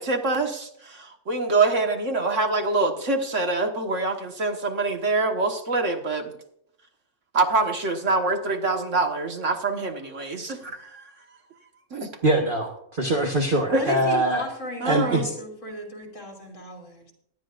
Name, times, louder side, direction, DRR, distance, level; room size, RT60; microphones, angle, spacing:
voice 1, 0.0-6.3 7.3-11.0 11.9-12.1 13.7-13.8 14.8-15.3, right 3 dB, 55° right, 4 dB, 1.8 m, -25 dB
voice 2, 12.2-14.4 14.8-15.3, right 1 dB, 40° right, 1 dB, 1.4 m, -23 dB
voice 3, 13.6-17.1, equal, 55° left, 1 dB, 3.3 m, -35 dB
19.0 x 12.0 x 2.5 m, 0.72 s
omnidirectional pair, 1.5 m